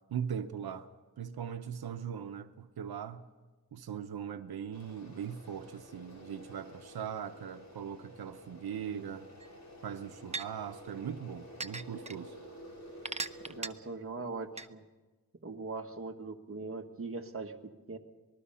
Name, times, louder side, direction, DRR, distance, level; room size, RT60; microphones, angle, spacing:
voice 1, 0.1-0.9 1.2-3.3 3.7-9.3 9.8-12.4, right 8 dB, 85° right, 0.8 m, -40 dB
sound 1, 4.7-13.6, equal, 50° left, 5.2 m, -51 dB
sound 2, 9.4-9.5 10.3-10.5 11.6-12.2 13.1-13.7 14.6-14.7, right 3 dB, 20° right, 0.6 m, -37 dB
voice 2, 13.5-14.8 15.4-18.0, right 3 dB, 35° right, 1.5 m, -41 dB
26.0 x 20.0 x 5.6 m
wide cardioid pair, 135°, 36 cm